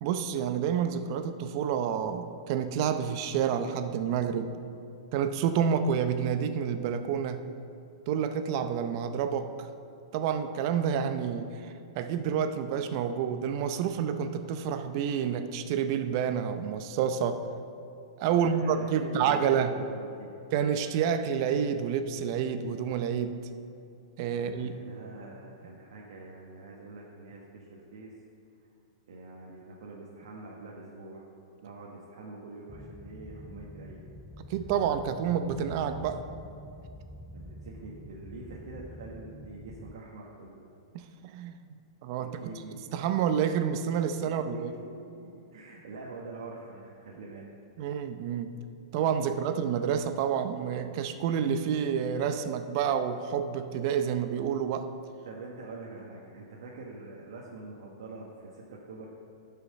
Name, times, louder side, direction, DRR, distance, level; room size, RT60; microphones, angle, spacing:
voice 1, 0.0-4.5 5.1-7.4 8.1-9.7 10.1-17.4 18.2-19.7 20.5-23.4 24.2-24.7 34.5-36.2 41.2-41.6 42.0-42.3 42.9-44.7 47.8-48.5 48.9-54.9, right 8 dB, 50° right, 9 dB, 0.6 m, -29 dB
voice 2, 18.3-20.4 24.3-28.1 29.1-31.3 31.6-34.0 35.0-35.2 37.3-40.6 42.2-42.8 44.2-47.5 55.2-59.1, right 3 dB, 75° right, -3 dB, 1.3 m, -45 dB
sound 1, 32.7-39.9, left 1 dB, 5° left, 0.5 m, -46 dB
11.5 x 5.8 x 5.4 m, 2.6 s
hypercardioid pair, 135°, 3 cm